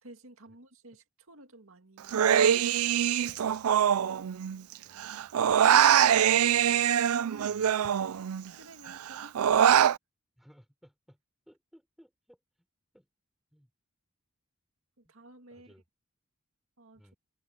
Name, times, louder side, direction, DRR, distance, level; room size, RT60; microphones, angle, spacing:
voice 1, 0.0-2.9 8.6-9.9 15.0-15.7 16.8-17.0, right 1 dB, 70° right, 2.1 m, -53 dB
Human voice, 2.1-4.7 5.0-8.5 8.9-10.0, right 9 dB, 85° right, 0.4 m, -24 dB
sound 1, 3.2-4.0 5.4-6.4 7.8-8.6, left 1 dB, 35° left, 5.4 m, -58 dB
voice 2, 4.8-5.3 5.7-5.8 6.1-6.9 7.3-7.9 10.4-11.2 11.5-12.4 12.9-13.1 13.5-13.7 15.0-15.1 15.5-15.8 16.9-17.2, equal, ahead, 4.8 m, -59 dB
head